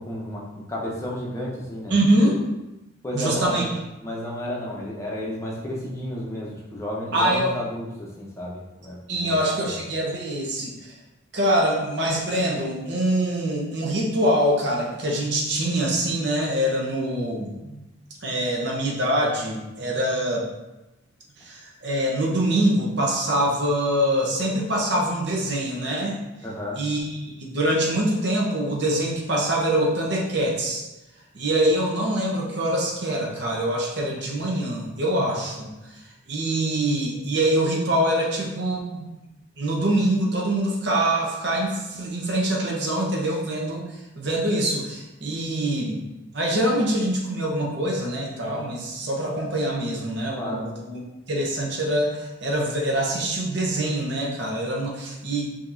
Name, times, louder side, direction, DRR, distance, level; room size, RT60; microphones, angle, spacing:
voice 1, 0.0-2.0 3.0-3.7 4.0-9.8 26.4-26.8 50.4-50.7, left 1 dB, 15° left, -4 dB, 0.7 m, -32 dB
voice 2, 1.9-2.4 3.1-3.7 7.1-7.5 9.1-10.7 11.3-17.8 18.2-20.5 21.4-26.2 26.8-30.8 31.3-35.7 36.3-39.1 39.6-43.9 44.2-46.0 46.3-51.0 51.3-55.4, right 1 dB, 55° right, -2 dB, 0.8 m, -24 dB
5.1 x 2.9 x 2.6 m, 0.99 s
head